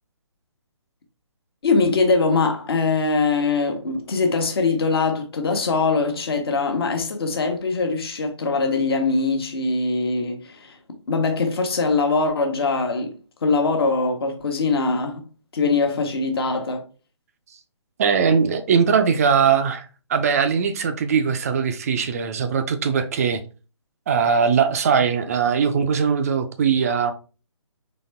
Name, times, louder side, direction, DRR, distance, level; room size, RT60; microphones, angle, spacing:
voice 1, 1.6-10.8 11.1-15.2 15.5-16.9, left 4 dB, 55° left, 1.1 m, -22 dB
voice 2, 18.0-23.4 24.1-27.1, right 6 dB, 30° right, 0.4 m, -20 dB
4.1 x 3.3 x 3.3 m
figure-of-eight pair, 145°, 16 cm